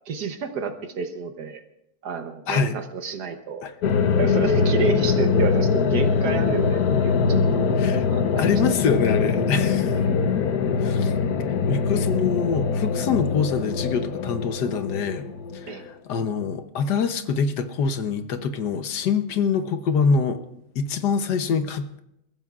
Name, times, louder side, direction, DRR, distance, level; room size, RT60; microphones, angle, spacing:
voice 1, 0.1-1.6 2.0-3.6 4.2-8.4 10.0-10.2 15.7-15.8, right 5 dB, 75° right, 6 dB, 1.6 m, -30 dB
sound 1, 3.8-15.9, left 5 dB, 70° left, 1.4 m, -22 dB
voice 2, 7.7-8.1 8.4-10.0 10.8-11.2 11.7-15.3 15.5-20.4 20.7-22.0, left 5 dB, 85° left, 8 dB, 1.5 m, -25 dB
29.5 x 14.5 x 2.5 m, 0.83 s
omnidirectional pair, 1.7 m